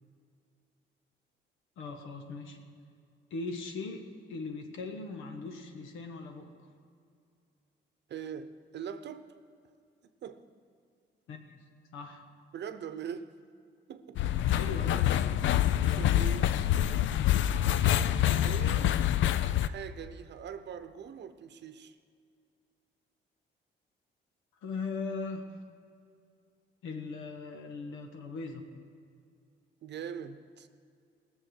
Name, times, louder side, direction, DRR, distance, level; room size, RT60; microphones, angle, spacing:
voice 1, 1.8-2.6 3.3-6.5 11.3-11.6 11.9-12.2 14.5-15.3 24.6-25.5 26.8-28.7, left 4 dB, 85° left, 4 dB, 1.5 m, -39 dB
voice 2, 8.1-9.4 10.2-10.4 12.5-13.4 13.9-14.5 16.0-16.7 18.4-19.0 19.6-22.0 29.8-30.7, right 8 dB, 60° right, 11 dB, 0.8 m, -42 dB
sound 1, 14.2-19.7, left 11 dB, 70° left, 0.5 m, -26 dB
18.5 x 7.1 x 6.5 m, 2.3 s
cardioid pair, 90°, 20 cm